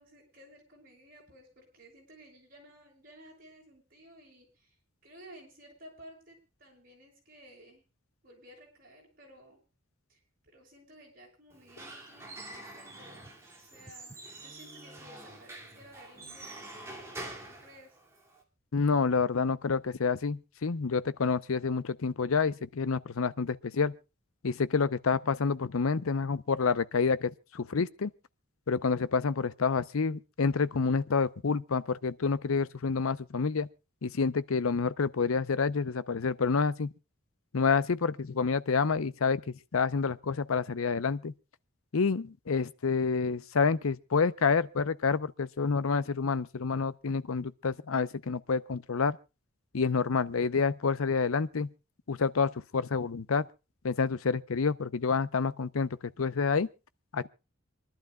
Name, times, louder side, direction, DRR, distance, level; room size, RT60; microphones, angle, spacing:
voice 1, 0.0-4.7 5.0-7.8 8.2-9.6 10.1-18.0, right 1 dB, 40° right, 6.5 m, -55 dB
Squeak / Wood, 11.5-18.4, right 2 dB, 15° right, 2.2 m, -46 dB
voice 2, 18.7-23.9 24.4-28.1 28.7-33.7 34.0-36.9 37.5-41.3 41.9-49.2 49.7-51.7 52.1-53.5 53.8-56.7 57.1-57.3, left 5 dB, 75° left, 0.6 m, -28 dB
27.0 x 11.5 x 2.2 m
head